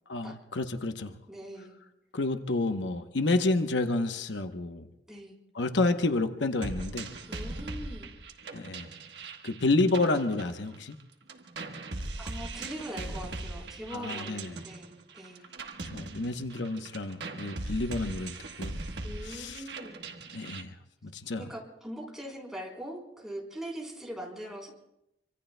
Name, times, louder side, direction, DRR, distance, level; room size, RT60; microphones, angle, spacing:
voice 1, 0.1-1.1 2.1-4.9 5.5-7.1 8.5-8.9 9.4-11.0 13.9-14.5 15.9-18.7 19.2-19.6 20.3-20.7 21.0-21.4, left 2 dB, 90° left, 7 dB, 0.9 m, -29 dB
voice 2, 1.3-1.8 5.1-5.4 7.3-8.1 12.2-15.5 19.0-20.0 21.4-24.7, equal, 5° right, -2 dB, 3.7 m, -41 dB
sound 1, 6.6-11.0 11.3-20.6, right 2 dB, 70° right, 1.2 m, -40 dB
26.0 x 25.0 x 2.2 m, 0.84 s
head